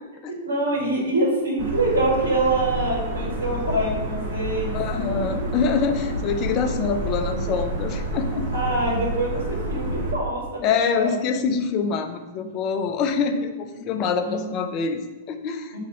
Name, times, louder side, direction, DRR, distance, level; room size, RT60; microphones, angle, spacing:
voice 1, 0.3-4.8 5.3-5.4 7.4-7.5 8.5-11.2 14.2-14.5 15.7-15.8, right 1 dB, 70° right, -5 dB, 2.1 m, -25 dB
sound 1, 1.6-10.1, right 1 dB, 40° right, 1.4 m, -29 dB
voice 2, 4.7-8.5 10.6-15.8, left 5 dB, 35° left, 7 dB, 0.6 m, -25 dB
5.8 x 3.5 x 5.7 m, 1.1 s
figure-of-eight pair, 100°, 0 cm